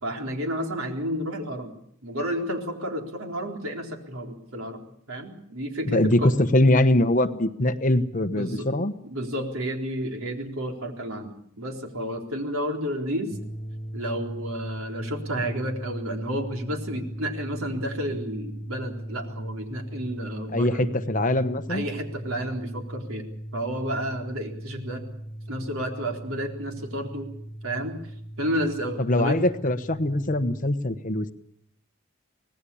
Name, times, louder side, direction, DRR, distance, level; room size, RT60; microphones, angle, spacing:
voice 1, 0.0-1.7 2.0-4.8 5.1-6.3 8.3-8.7 9.0-13.4 13.9-20.9 21.7-23.2 23.5-25.0 25.5-27.3 27.6-28.0 28.4-29.4, equal, 85° right, 3 dB, 4.0 m, -31 dB
voice 2, 5.8-8.9 20.5-21.8 29.0-31.3, left 1 dB, 40° left, 10 dB, 1.2 m, -22 dB
sound 1, 13.3-30.7, right 1 dB, 15° left, 1.0 m, -38 dB
25.0 x 18.5 x 7.1 m, 0.72 s
head